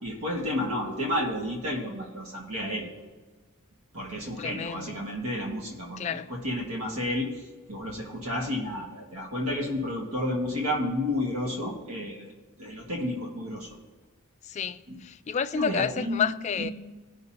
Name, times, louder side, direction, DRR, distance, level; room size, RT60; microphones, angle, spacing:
voice 1, 0.0-2.9 3.9-7.3 7.7-13.7 14.9-15.0 15.5-16.3 16.6-16.7, left 1 dB, 75° right, 1.8 m, -31 dB
voice 2, 4.4-5.0 6.0-6.3 14.4-16.7, left 7 dB, 30° left, 0.3 m, -30 dB
17.5 x 5.9 x 2.8 m
head